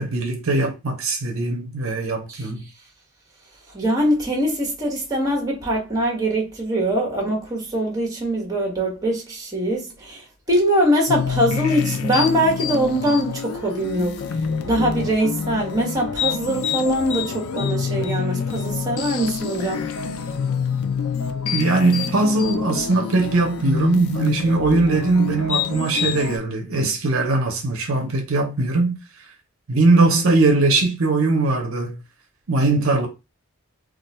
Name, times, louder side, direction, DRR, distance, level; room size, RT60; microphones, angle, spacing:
voice 1, 0.0-2.7 21.5-29.0 29.7-32.0 32.5-33.1, right 3 dB, 65° right, 0.7 m, -20 dB
voice 2, 3.7-10.2 10.5-14.1 14.6-19.9, right 1 dB, 15° right, 1.0 m, -22 dB
sound 1, 11.1-26.4, left 6 dB, 75° left, 0.4 m, -27 dB
2.4 x 2.3 x 4.0 m
head